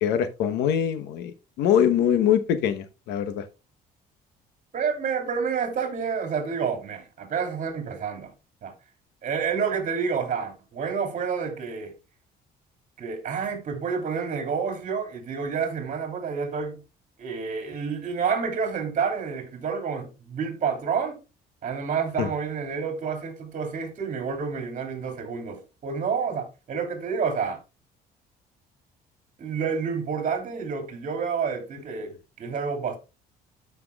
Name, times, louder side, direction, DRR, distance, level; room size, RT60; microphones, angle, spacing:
voice 1, 0.0-3.4 22.2-22.3, left 9 dB, 85° left, 1.0 m, -23 dB
voice 2, 4.7-8.3 8.6-8.7 9.2-11.9 13.0-16.8 17.2-21.2 21.6-27.6 29.4-33.0, right 6 dB, 50° right, 2.7 m, -29 dB
13.5 x 6.0 x 2.3 m
cardioid pair, 110°, 17 cm